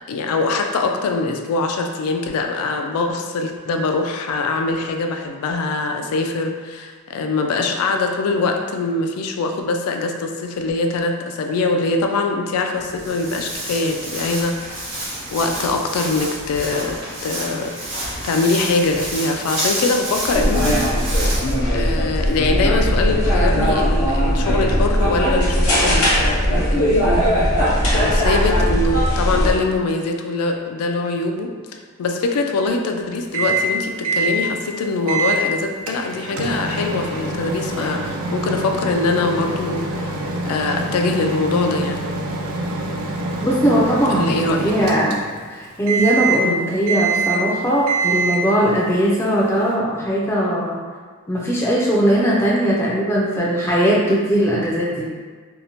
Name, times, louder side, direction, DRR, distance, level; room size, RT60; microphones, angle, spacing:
voice 1, 0.1-15.0 15.3-20.8 21.7-31.5 32.0-40.1 40.4-42.0 44.1-44.7 46.4-46.7, left 3 dB, 90° left, 4 dB, 0.3 m, -23 dB
Walk footsteps, 12.8-21.5, right 1 dB, 50° right, 1.0 m, -29 dB
sound 1, 20.3-29.5, equal, 70° left, 0.8 m, -18 dB
Microwave oven, 33.3-33.7 34.0-34.4 35.1-35.4 35.9-45.5 45.9-46.5 46.9-47.5 47.9-48.5, right 3 dB, 75° right, 0.3 m, -24 dB
voice 2, 43.4-45.2 45.5-50.8 51.3-55.2, equal, 10° left, -6 dB, 0.3 m, -19 dB
2.7 x 2.0 x 2.8 m, 1.5 s
head